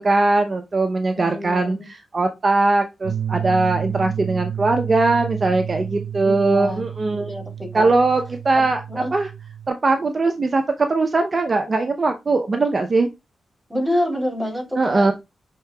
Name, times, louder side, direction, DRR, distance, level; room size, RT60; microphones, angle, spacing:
voice 1, 0.0-7.3 7.7-9.3 9.7-13.1 14.8-15.1, right 3 dB, 45° right, 6 dB, 0.6 m, -20 dB
voice 2, 1.1-1.9 6.2-6.8 7.1-7.9 8.5-8.6 8.9-9.1 13.7-15.1, left 1 dB, ahead, 0 dB, 3.2 m, -27 dB
sound 1, 3.0-9.7, right 9 dB, 90° right, 0.7 m, -30 dB
6.4 x 3.7 x 2.2 m, 0.23 s
cardioid pair, 60°, 0 cm